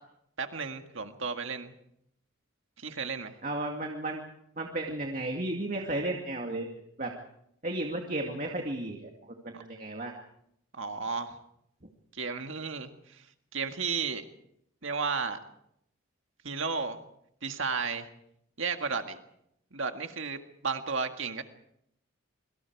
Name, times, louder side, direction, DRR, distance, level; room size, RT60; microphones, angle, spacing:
voice 1, 0.4-1.7 2.8-3.4 9.5-9.6 10.7-11.4 12.1-13.2 13.5-14.2 14.8-15.4 16.4-17.0 17.4-18.1 18.6-19.2 19.7-20.4 20.6-21.4, right 5 dB, 65° right, 6 dB, 1.9 m, -33 dB
voice 2, 3.4-4.2 4.6-6.7 7.0-7.1 7.6-9.1 9.4-10.1, right 1 dB, 40° right, 1 dB, 2.3 m, -33 dB
26.5 x 25.0 x 4.8 m, 0.75 s
head